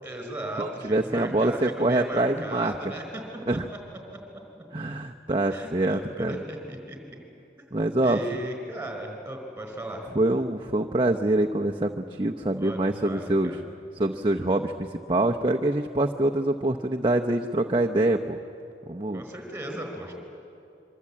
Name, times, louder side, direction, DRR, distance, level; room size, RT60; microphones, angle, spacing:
voice 1, 0.0-3.2 5.5-7.0 8.0-10.1 12.6-13.6 19.1-20.1, right 1 dB, 10° right, 3 dB, 4.6 m, -36 dB
voice 2, 0.6-2.8 3.5-3.6 4.7-6.4 7.7-8.2 10.1-13.5 14.0-18.4 18.9-19.2, right 1 dB, 30° right, 2 dB, 0.8 m, -25 dB
25.5 x 24.0 x 8.6 m, 2.7 s
head